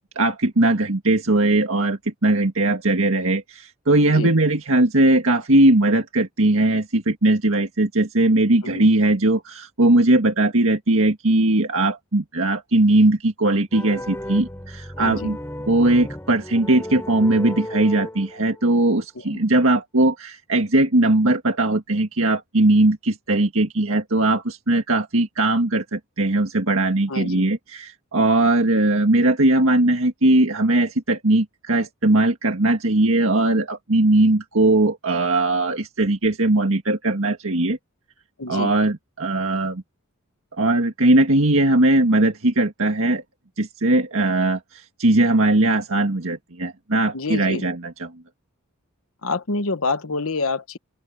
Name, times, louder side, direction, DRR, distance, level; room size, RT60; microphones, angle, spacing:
voice 1, 0.2-15.4 15.7-37.8 38.5-39.8 40.6-43.2 43.6-48.1, right 2 dB, 65° right, 1.9 m, -19 dB
sound 1, 13.7-18.7, left 1 dB, 10° left, 4.3 m, -34 dB
voice 2, 15.0-15.3 19.1-19.4 27.1-27.5 38.4-38.7 47.1-47.6 49.2-50.8, left 3 dB, 70° left, 1.2 m, -27 dB
open air
head